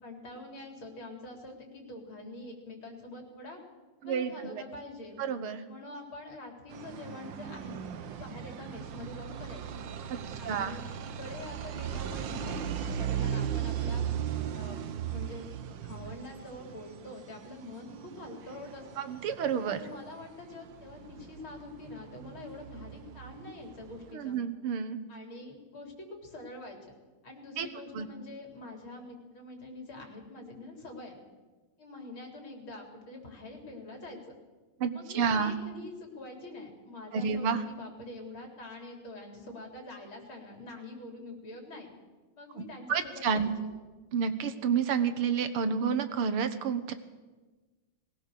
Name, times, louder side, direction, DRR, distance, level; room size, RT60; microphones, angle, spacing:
voice 1, 0.0-3.6 4.0-5.2 5.7-9.8 10.4-10.8 11.2-12.6 12.9-14.1 14.5-15.5 15.8-19.0 19.7-24.4 25.1-26.8 27.2-31.2 31.8-34.3 34.9-41.9 42.3-43.5, left 2 dB, 70° left, 2 dB, 4.5 m, -45 dB
voice 2, 4.0-4.6 5.2-5.6 10.5-10.8 19.0-19.8 24.1-25.0 27.6-27.7 27.9-28.1 34.8-35.5 37.1-37.6 42.6-42.7 42.9-43.5 44.1-46.9, right 6 dB, 85° right, 11 dB, 2.1 m, -30 dB
sound 1, 6.7-24.1, right 9 dB, 65° right, 1.6 m, -38 dB
21.0 x 18.5 x 6.7 m, 1.3 s
omnidirectional pair, 2.3 m